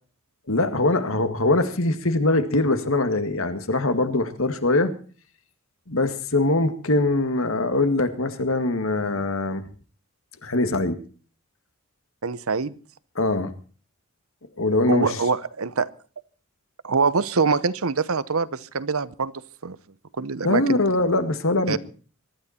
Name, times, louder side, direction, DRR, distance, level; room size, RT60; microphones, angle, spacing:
voice 1, 0.5-4.9 5.9-9.6 10.4-11.0 13.2-13.5 14.6-15.2 20.4-21.8, left 2 dB, 70° left, 9 dB, 2.0 m, -22 dB
voice 2, 12.2-12.7 14.9-15.9 16.8-19.3 19.6-19.8 20.2-20.8 21.7-21.8, right 4 dB, 80° right, 16 dB, 0.9 m, -24 dB
23.0 x 12.5 x 4.4 m, 0.40 s
head